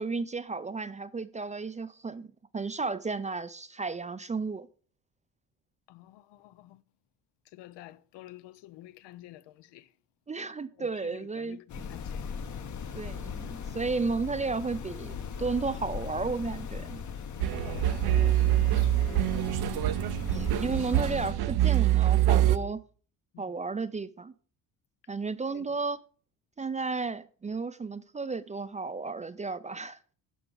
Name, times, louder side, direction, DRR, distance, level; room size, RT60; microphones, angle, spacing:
voice 1, 0.0-4.7 10.3-11.6 12.9-17.0 20.3-22.8 23.4-24.3 25.1-26.0 26.6-30.0, right 4 dB, 20° right, 0.4 m, -33 dB
voice 2, 5.9-6.8 7.5-9.9 10.8-10.9 11.1-12.2 17.5-19.1 23.3-23.4 25.5-25.7, left 15 dB, 80° left, 0.6 m, -49 dB
sound 1, 11.7-21.3, left 6 dB, 45° left, 0.9 m, -38 dB
sound 2, 17.4-22.6, right 13 dB, 60° right, 0.7 m, -25 dB
11.0 x 5.8 x 3.9 m
cardioid pair, 85°, 43 cm